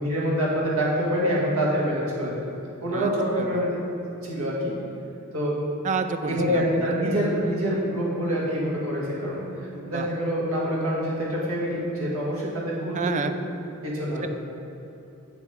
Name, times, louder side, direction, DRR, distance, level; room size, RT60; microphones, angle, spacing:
voice 1, 0.0-2.3 2.8-3.8 4.2-4.7 5.3-5.6 6.2-9.4 9.9-13.2 13.8-14.2, equal, 90° right, -6 dB, 1.9 m, -26 dB
voice 2, 5.8-7.2 9.7-10.1 12.9-13.4 14.2-14.3, right 5 dB, 35° right, 9 dB, 0.3 m, -30 dB
8.2 x 7.3 x 3.5 m, 2.8 s
head